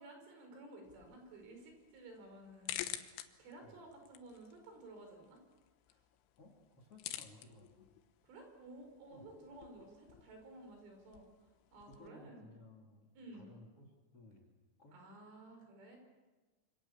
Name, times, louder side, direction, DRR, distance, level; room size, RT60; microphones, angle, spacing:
voice 1, 0.0-3.0 3.4-5.4 8.2-11.3 11.7-12.4 13.2-13.5 14.9-16.0, right 2 dB, 75° right, 3 dB, 7.7 m, -54 dB
sound 1, 0.8-12.1, left 13 dB, 90° left, 3.7 m, -51 dB
voice 2, 6.4-7.9 9.1-9.3 11.8-14.5 14.8-15.0, left 2 dB, 35° left, 4 dB, 3.1 m, -59 dB
27.0 x 25.5 x 7.3 m, 1.3 s
omnidirectional pair, 5.6 m